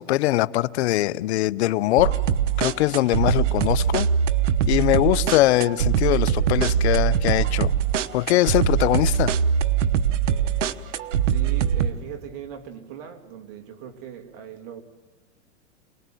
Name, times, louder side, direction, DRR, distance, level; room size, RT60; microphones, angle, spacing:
voice 1, 0.0-2.2 2.6-4.1 4.7-7.7 8.1-9.3, left 16 dB, 65° left, 0.7 m, -22 dB
sound 1, 2.0-11.9, right 8 dB, 85° right, 1.1 m, -22 dB
voice 2, 11.3-14.8, right 9 dB, 55° right, 2.7 m, -39 dB
27.0 x 19.5 x 9.2 m
supercardioid pair, 140°, 35 cm